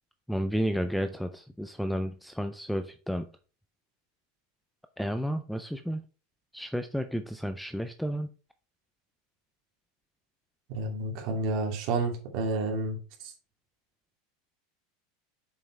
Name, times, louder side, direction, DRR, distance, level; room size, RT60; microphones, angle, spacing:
voice 1, 0.3-3.2 5.0-6.0 6.5-8.3, equal, ahead, 9 dB, 0.4 m, -31 dB
voice 2, 10.7-13.3, right 2 dB, 45° right, 2 dB, 2.7 m, -30 dB
7.2 x 5.4 x 4.4 m, 0.35 s
supercardioid pair, 175°, 0 cm